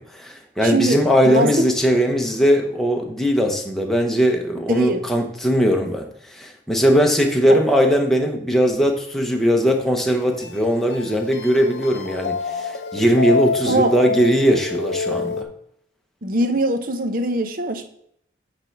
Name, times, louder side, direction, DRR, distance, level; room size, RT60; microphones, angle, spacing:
voice 1, 0.0-6.1 6.3-15.5, equal, ahead, 2 dB, 0.9 m, -19 dB
voice 2, 0.6-1.0 1.2-1.7 4.7-5.0 7.5-7.6 13.7-13.9 16.2-17.9, right 1 dB, 45° right, 7 dB, 0.8 m, -22 dB
sound 1, 9.2-15.4, left 4 dB, 65° left, 0.7 m, -28 dB
8.8 x 3.4 x 5.9 m, 0.71 s
head